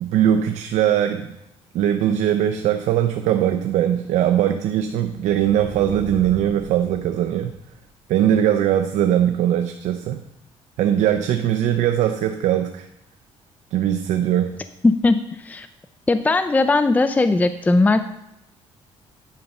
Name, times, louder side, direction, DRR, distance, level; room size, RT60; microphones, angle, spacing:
voice 1, 0.0-1.3 1.7-7.5 8.1-10.2 10.8-12.9 13.7-14.6, right 10 dB, 85° right, 7 dB, 0.6 m, -20 dB
sound 1, 5.0-7.9, right 2 dB, 40° right, 3.5 m, -39 dB
voice 2, 14.8-15.7 16.1-18.1, left 3 dB, 15° left, 11 dB, 0.4 m, -18 dB
9.7 x 5.4 x 6.4 m, 0.84 s
cardioid pair, 115°, 12 cm